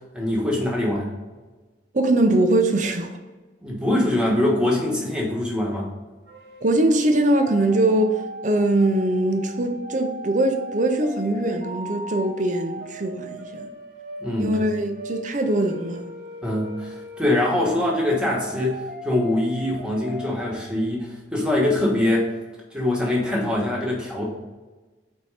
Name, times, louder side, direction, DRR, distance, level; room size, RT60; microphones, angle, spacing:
voice 1, 0.1-1.1 3.6-5.9 14.2-14.5 16.4-22.3 22.7-24.2, left 1 dB, 5° right, 1.3 m, -23 dB
voice 2, 1.9-3.2 6.6-13.7 14.4-16.1, right 1 dB, 45° right, 0.7 m, -22 dB
sound 1, 6.3-20.6, equal, 60° right, 1.1 m, -39 dB
4.6 x 4.3 x 4.8 m
head